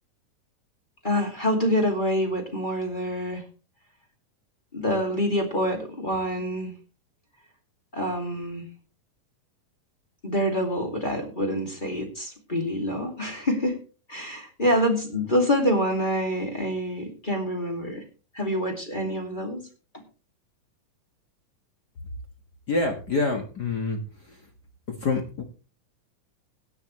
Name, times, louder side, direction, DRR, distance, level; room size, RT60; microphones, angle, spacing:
voice 1, 1.0-3.4 4.7-6.7 7.9-8.7 10.2-13.8 14.1-18.0 18.3-19.7 19.9-20.0, equal, 15° left, 3 dB, 2.1 m, -26 dB
voice 2, 22.7-24.0 24.3-24.4 25.0-25.4, left 3 dB, 40° left, 3 dB, 1.5 m, -26 dB
17.5 x 9.1 x 3.2 m, 0.35 s
omnidirectional pair, 3.9 m